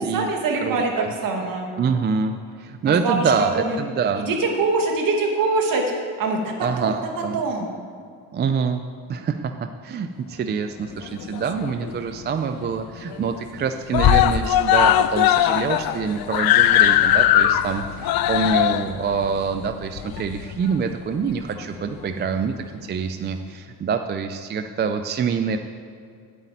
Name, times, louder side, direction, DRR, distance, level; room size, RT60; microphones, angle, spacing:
voice 1, 0.0-1.7 2.8-3.8 4.1-5.9 6.2-7.0 7.3-7.7, right 3 dB, 55° right, 1 dB, 2.0 m, -24 dB
voice 2, 0.6-1.1 1.8-4.2 6.6-7.4 8.3-8.8 9.1-22.5 22.8-25.6, right 6 dB, 30° right, 7 dB, 0.4 m, -25 dB
Screaming, 11.0-12.0 12.3-12.4 12.7-12.8 13.1-13.6 13.9-20.7 21.6-21.7, left 12 dB, 65° left, 0.6 m, -19 dB
8.4 x 8.2 x 9.0 m, 2.4 s
cardioid pair, 165°, 39 cm